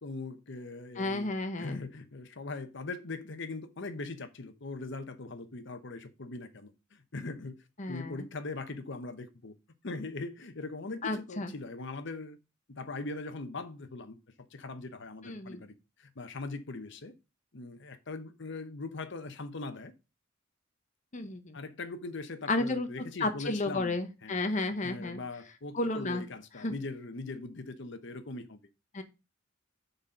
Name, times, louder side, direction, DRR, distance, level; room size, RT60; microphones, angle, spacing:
voice 1, 0.0-1.3 1.6-7.6 7.9-9.6 9.8-12.4 12.7-14.2 14.5-15.7 16.0-17.1 17.5-19.9 21.5-24.0 24.2-24.4 24.8-28.6, left 3 dB, 65° left, 1.0 m, -40 dB
voice 2, 0.9-1.8 7.8-8.3 11.0-11.5 15.2-15.6 21.1-21.6 22.5-22.9 23.2-25.2 25.7-26.2 26.6-26.7 28.9-29.0, left 2 dB, 40° left, 0.9 m, -32 dB
6.8 x 4.2 x 5.7 m
head